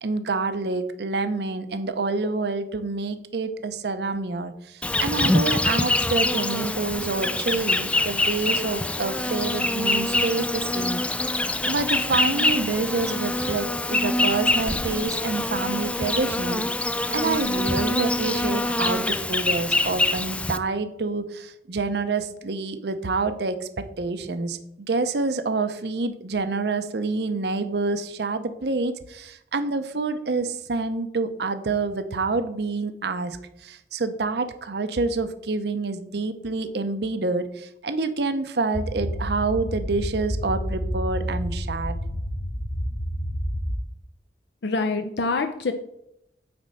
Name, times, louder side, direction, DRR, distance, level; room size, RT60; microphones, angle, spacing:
voice 1, 0.0-11.0 11.6-24.6 24.9-42.0, right 3 dB, 70° right, 10 dB, 0.7 m, -27 dB
Insect, 4.8-20.6, left 2 dB, 5° left, 0.3 m, -25 dB
sound 1, 38.7-43.8, equal, 65° left, 3.6 m, -29 dB
voice 2, 44.6-45.7, left 3 dB, 80° left, 7 dB, 0.6 m, -25 dB
9.4 x 4.3 x 6.3 m, 0.80 s
head